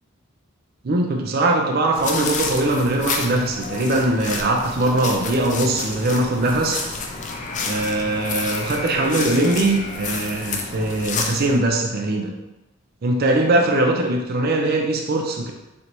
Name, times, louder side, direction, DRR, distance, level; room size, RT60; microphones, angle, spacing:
voice 1, 0.8-6.9 7.6-12.3 13.0-15.5, right 2 dB, 50° right, 2 dB, 0.5 m, -21 dB
sound 1, 2.0-11.6, left 4 dB, 35° left, 0.4 m, -29 dB
3.9 x 3.3 x 2.9 m, 0.99 s
head